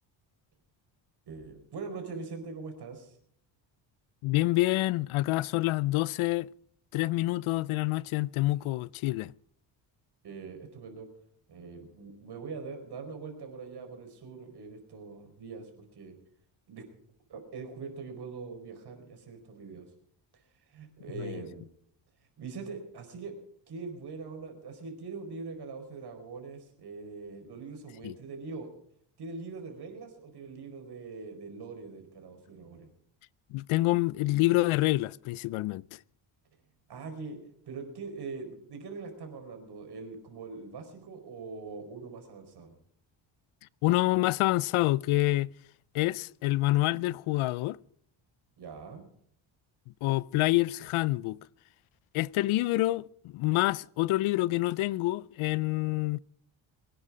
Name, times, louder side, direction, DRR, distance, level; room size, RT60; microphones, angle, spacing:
voice 1, 1.3-3.2 10.2-11.1 11.5-16.2 16.7-16.8 17.3-19.9 20.7-21.7 22.4-23.4 23.7-28.7 29.2-32.9 36.9-37.4 37.7-42.8 48.6-49.0, right 4 dB, 55° right, 4.8 m, -42 dB
voice 2, 4.2-6.5 6.9-9.3 21.2-21.4 28.0-28.1 33.5-36.0 43.8-45.5 45.9-47.8 50.0-51.4 52.1-56.2, left 18 dB, 90° left, 0.6 m, -27 dB
23.0 x 9.9 x 4.9 m
cardioid pair, 130°, 47 cm